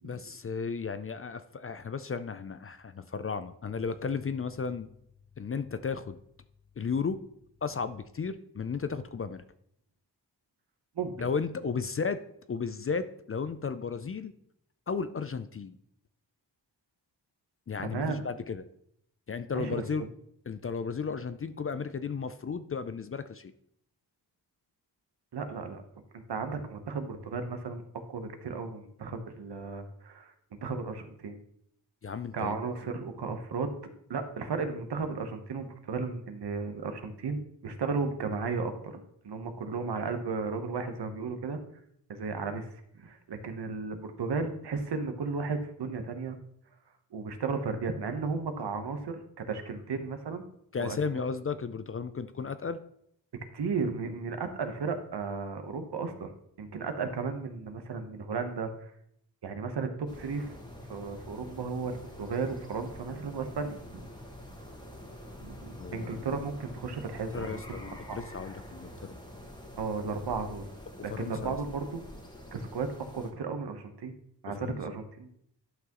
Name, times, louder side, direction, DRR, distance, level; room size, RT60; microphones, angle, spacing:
voice 1, 0.0-4.9 5.4-6.2 6.8-7.2 7.6-9.4 11.2-12.2 12.5-14.3 14.9-15.8 17.7-18.6 19.3-20.1 20.5-23.5 32.0-32.5 50.7-52.8 65.8-66.2 67.3-69.1 71.0-71.6 74.6-74.8, left 5 dB, 35° left, 12 dB, 0.4 m, -34 dB
voice 2, 17.8-18.2 19.5-19.8 25.3-25.8 26.1-27.8 28.1-31.4 32.3-33.8 34.1-41.6 42.1-42.7 42.9-46.4 47.1-50.5 50.8-51.2 53.5-58.9 59.4-60.5 60.9-64.1 65.4-68.2 69.8-70.7 71.0-72.0 72.5-72.9 73.1-74.1 74.4-75.3, right 4 dB, 65° right, 7 dB, 1.1 m, -34 dB
sound 1, 60.1-73.3, equal, 10° left, 1.4 m, -46 dB
11.0 x 5.9 x 3.0 m, 0.71 s
cardioid pair, 70°, 43 cm